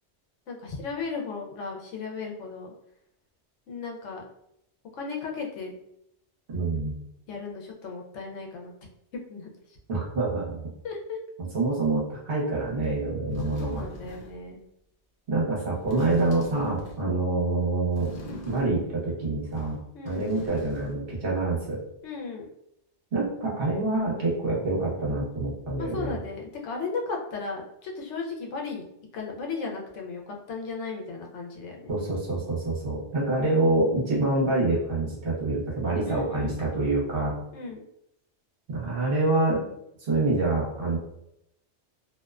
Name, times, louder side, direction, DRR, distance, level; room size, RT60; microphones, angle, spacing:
voice 1, 0.5-2.7 3.7-4.2 4.9-5.8 7.3-8.7 9.1-9.8 10.8-11.2 13.3-14.6 19.9-20.3 22.0-22.5 25.8-28.8 29.1-31.9 36.0-36.6 37.5-37.8, left 4 dB, 85° left, 0 dB, 0.9 m, -35 dB
voice 2, 6.5-7.0 9.9-10.7 11.5-13.8 15.3-18.1 18.4-19.8 20.0-21.8 23.1-26.2 31.9-37.4 38.7-39.7 40.0-41.0, right 2 dB, 55° right, -4 dB, 1.0 m, -26 dB
sound 1, 12.8-12.9 13.3-14.4 15.7-17.1 17.9-19.0 19.4-21.1 21.4-21.5, left 1 dB, 60° left, 0.6 m, -43 dB
2.5 x 2.1 x 2.3 m, 0.78 s
omnidirectional pair, 1.2 m